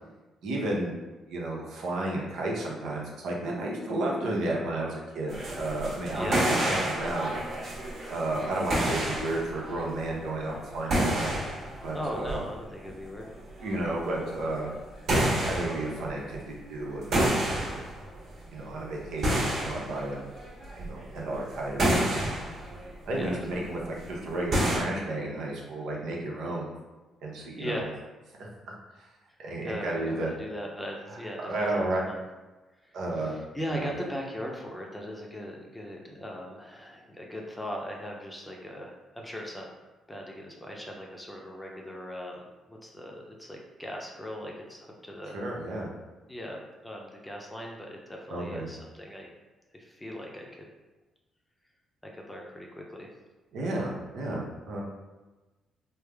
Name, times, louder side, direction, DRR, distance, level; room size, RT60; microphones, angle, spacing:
voice 1, 0.4-1.0 1.3-7.3 8.1-11.4 11.8-12.4 13.6-14.7 15.5-17.9 18.5-20.2 20.8-22.3 23.1-26.7 27.2-27.9 28.4-28.5 29.4-30.3 31.4-32.0 32.9-33.3 33.7-33.9 45.3-45.9 48.3-48.7 53.5-54.8, right 2 dB, 80° right, -2 dB, 0.7 m, -32 dB
sound 1, 5.3-14.8 15.1-16.5 16.9-18.2 18.6-24.0 24.5-24.8, right 1 dB, 55° right, 1.4 m, -29 dB
voice 2, 6.1-6.5 11.9-13.2 23.1-23.7 27.6-28.0 29.6-32.2 32.8-39.7 40.1-45.4 46.3-49.3 49.7-50.7 52.1-53.1, equal, 10° left, 0 dB, 0.6 m, -39 dB
3.3 x 2.0 x 3.4 m, 1.2 s
cardioid pair, 90°, 0 cm